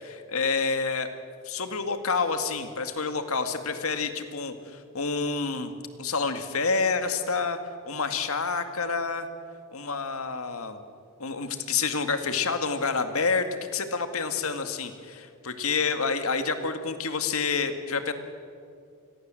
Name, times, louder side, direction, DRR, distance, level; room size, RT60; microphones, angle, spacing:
voice 1, 0.0-1.1 1.5-5.7 6.0-7.6 7.9-9.3 9.7-10.8 11.2-18.1, left 4 dB, 70° left, 8 dB, 2.1 m, -28 dB
29.0 x 21.5 x 7.7 m, 2.4 s
head